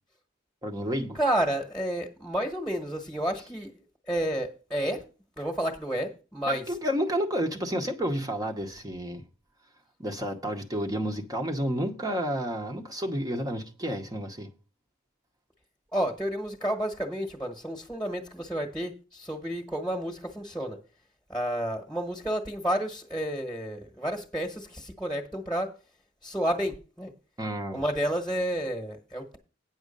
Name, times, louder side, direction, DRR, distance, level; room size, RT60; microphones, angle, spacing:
voice 1, 0.6-1.2 6.5-9.2 10.0-14.5 27.4-27.8, equal, 20° right, 0.9 m, -30 dB
voice 2, 1.1-3.7 4.1-5.0 5.4-6.6 15.9-20.8 21.3-25.7 26.2-27.1 27.7-29.4, right 1 dB, 5° left, 1.2 m, -30 dB
9.3 x 6.3 x 5.3 m
head